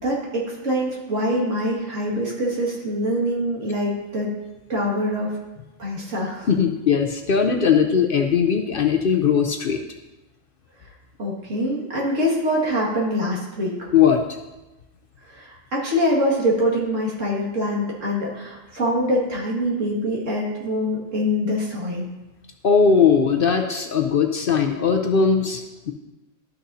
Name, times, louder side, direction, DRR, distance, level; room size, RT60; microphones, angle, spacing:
voice 1, 0.0-4.3 4.7-5.3 5.8-6.5 11.2-13.9 15.3-22.1, equal, 80° right, -4 dB, 2.4 m, -24 dB
voice 2, 6.5-9.8 13.9-14.2 22.6-25.9, left 6 dB, 55° left, 5 dB, 0.7 m, -19 dB
12.5 x 6.4 x 2.7 m, 1.0 s
omnidirectional pair, 1.3 m